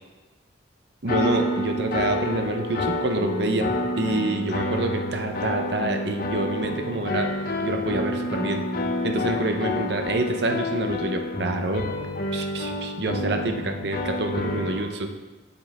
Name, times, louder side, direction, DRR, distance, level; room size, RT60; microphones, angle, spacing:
voice 1, 1.0-3.7 4.0-7.3 7.6-8.6 9.0-11.9 12.3-15.1, right 2 dB, 60° right, 4 dB, 0.8 m, -27 dB
sound 1, 1.1-14.8, left 1 dB, 50° left, 0.8 m, -28 dB
7.9 x 6.8 x 3.5 m, 1.2 s
head